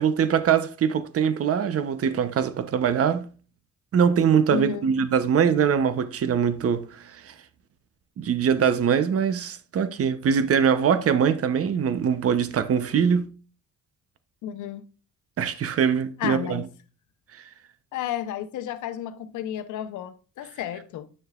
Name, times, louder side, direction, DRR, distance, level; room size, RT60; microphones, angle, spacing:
voice 1, 0.0-3.3 3.9-7.3 8.2-13.3 15.4-16.6, right 7 dB, 50° right, 0.8 m, -22 dB
voice 2, 4.5-4.9 14.4-14.8 15.6-15.7 16.2-16.7 17.9-21.1, left 10 dB, 80° left, 0.9 m, -32 dB
9.5 x 6.5 x 2.4 m
cardioid pair, 90°, 30 cm